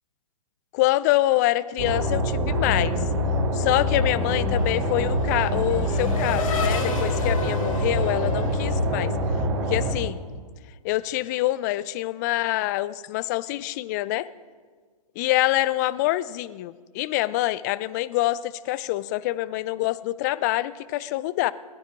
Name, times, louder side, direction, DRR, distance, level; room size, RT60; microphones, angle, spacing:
voice 1, 0.7-3.0 3.5-9.1 9.7-10.2 10.8-14.3 15.2-21.5, left 16 dB, 30° left, 18 dB, 0.4 m, -25 dB
sound 1, 1.8-9.9, equal, 40° right, 4.4 m, -25 dB
Race car auto racing / Accelerating revving vroom, 3.5-9.6, left 5 dB, 60° left, 2.0 m, -34 dB
20.0 x 12.0 x 3.8 m, 1.5 s
figure-of-eight pair, 125°, 20 cm